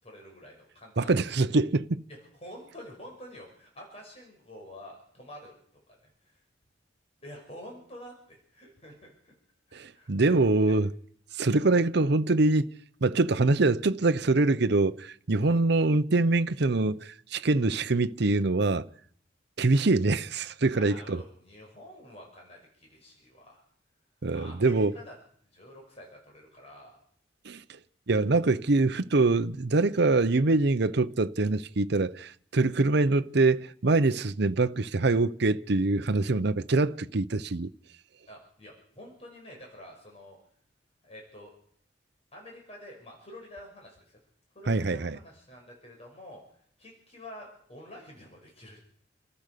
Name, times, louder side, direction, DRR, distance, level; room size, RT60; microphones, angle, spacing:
voice 1, 0.0-1.1 2.3-5.6 6.0-6.4 7.2-9.3 9.7-10.3 15.4-15.6 20.7-23.6 24.3-25.1 25.5-27.0 38.3-40.4 41.0-41.5 42.3-44.2 44.5-46.4 46.8-48.8, left 1 dB, 35° left, 5.8 m, -48 dB
voice 2, 1.0-2.0 9.7-10.9 11.3-12.6 13.0-18.8 19.6-21.2 24.2-25.0 27.4-27.6 28.1-37.7 44.7-45.2, right 3 dB, 65° right, 0.8 m, -24 dB
28.5 x 14.5 x 6.8 m
head